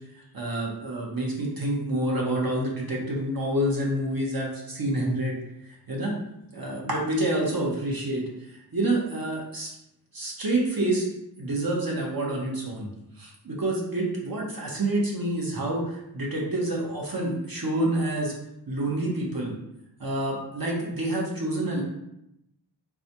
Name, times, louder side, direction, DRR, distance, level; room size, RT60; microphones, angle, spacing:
voice 1, 0.3-5.4 5.9-6.1 6.5-9.7 10.1-11.1 11.4-12.9 13.2-18.3 18.7-19.5 20.0-21.8, right 1 dB, 60° right, -2 dB, 1.0 m, -28 dB
4.1 x 2.2 x 2.9 m, 0.82 s
wide cardioid pair, 40°, 41 cm